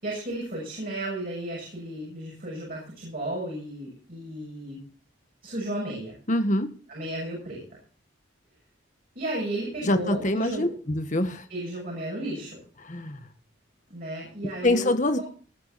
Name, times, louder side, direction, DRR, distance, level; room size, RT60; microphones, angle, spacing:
voice 1, 0.0-4.8 5.4-6.1 6.9-7.6 9.2-10.7 11.5-12.6 13.9-14.9, right 1 dB, 45° right, -3 dB, 6.9 m, -33 dB
voice 2, 6.3-6.7 9.9-11.4 12.8-13.2 14.6-15.2, left 1 dB, 40° left, 8 dB, 1.5 m, -24 dB
19.5 x 9.5 x 4.3 m, 0.40 s
head